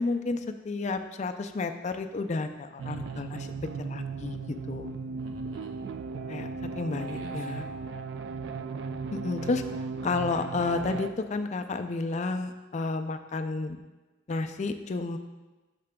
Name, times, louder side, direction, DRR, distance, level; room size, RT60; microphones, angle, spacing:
voice 1, 0.0-3.5 3.8-4.4 4.7-4.9 6.3-6.5 6.8-7.7 9.1-9.6 10.0-13.8 14.3-15.2, left 3 dB, 35° left, 7 dB, 0.4 m, -31 dB
sound 1, 2.8-11.1, right 4 dB, 60° right, 0.3 m, -36 dB
voice 2, 2.8-3.3 5.2-5.8 7.1-7.6 9.2-9.8, right 1 dB, 85° right, 2 dB, 0.9 m, -48 dB
8.5 x 6.7 x 2.2 m, 1.1 s
head